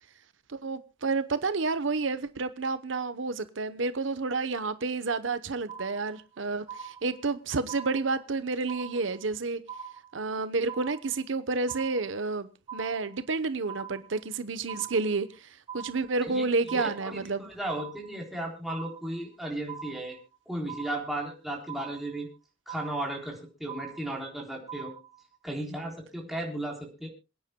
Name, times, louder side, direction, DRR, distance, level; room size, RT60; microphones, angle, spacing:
voice 1, 0.5-9.6 10.1-15.5 15.7-17.5, right 3 dB, 90° right, 0.9 m, -30 dB
sound 1, 5.7-6.4 6.7-7.4 7.7-8.4 8.7-9.4 9.7-10.4 10.7-11.4 11.7-12.4 12.7-13.4 13.7-14.4 14.7-15.4 15.7-16.4 16.7-17.4 17.7-18.4 18.7-19.4 19.7-20.4 20.7-21.4 21.7-22.4 22.7-23.4 23.7-24.4 24.7-25.4, right 7 dB, 25° right, 1.5 m, -43 dB
voice 2, 16.7-20.2 20.5-22.3 22.7-24.9 25.4-27.1, right 1 dB, ahead, 3.6 m, -35 dB
27.0 x 9.7 x 2.2 m
head